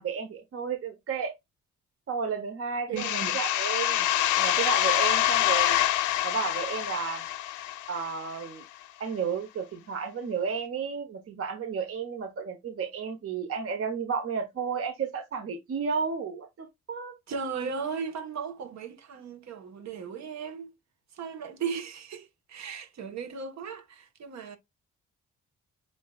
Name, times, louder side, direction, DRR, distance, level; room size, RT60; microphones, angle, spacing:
voice 1, 0.0-1.3 2.1-4.1 4.4-5.8 6.2-7.2 7.9-8.6 9.0-17.1, right 6 dB, 50° right, 0.9 m, -32 dB
voice 2, 2.9-3.4 17.3-20.7 21.1-24.6, right 6 dB, 65° right, 1.3 m, -36 dB
sound 1, 3.0-8.4, left 13 dB, 85° left, 0.7 m, -26 dB
7.0 x 2.6 x 2.4 m
cardioid pair, 90°, 30 cm